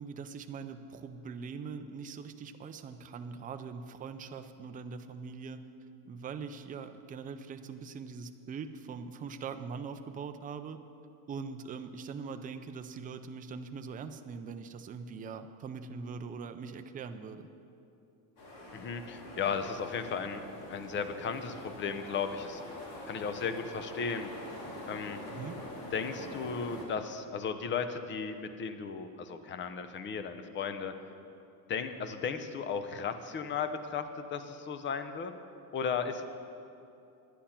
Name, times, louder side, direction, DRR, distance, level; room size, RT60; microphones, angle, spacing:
voice 1, 0.0-5.6 6.0-10.8 11.3-17.5 25.3-25.6, right 5 dB, 20° right, 8 dB, 0.4 m, -42 dB
sound 1, 18.4-26.8, left 1 dB, 60° left, 3.0 m, -45 dB
voice 2, 18.7-22.6 23.1-24.3 24.9-25.2 25.9-30.9 31.7-35.3 35.7-36.2, left 6 dB, 25° left, 9 dB, 0.6 m, -35 dB
11.0 x 10.0 x 5.8 m, 2.7 s
cardioid pair, 150°, 42 cm